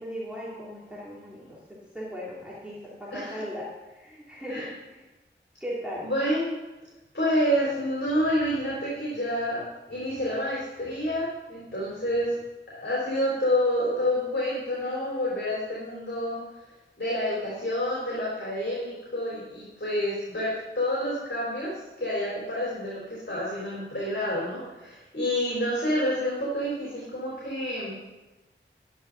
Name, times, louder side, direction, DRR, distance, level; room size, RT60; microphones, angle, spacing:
voice 1, 0.0-5.0 5.6-6.1, equal, 5° right, -8 dB, 3.1 m, -38 dB
voice 2, 3.1-3.4 4.5-4.7 6.0-6.5 7.1-12.4 12.8-16.4 17.0-21.7 22.0-28.0, equal, 60° left, -7 dB, 4.2 m, -28 dB
11.5 x 11.0 x 4.1 m, 1.1 s
wide cardioid pair, 45°, 21 cm